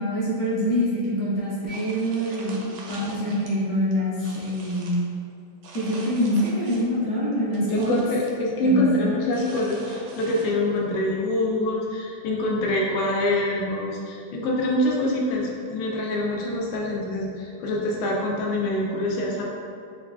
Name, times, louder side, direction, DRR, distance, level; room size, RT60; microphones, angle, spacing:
voice 1, 0.0-2.6 2.9-4.9 5.7-8.0 8.6-8.8, equal, 60° left, -8 dB, 1.2 m, -25 dB
sound 1, 1.7-3.5 3.9-5.0 5.6-7.0 7.3-8.4 9.3-10.8, right 2 dB, 90° right, 1.4 m, -44 dB
voice 2, 7.6-19.4, left 1 dB, 85° left, -2 dB, 1.3 m, -25 dB
5.8 x 2.3 x 2.3 m, 2.4 s
omnidirectional pair, 2.1 m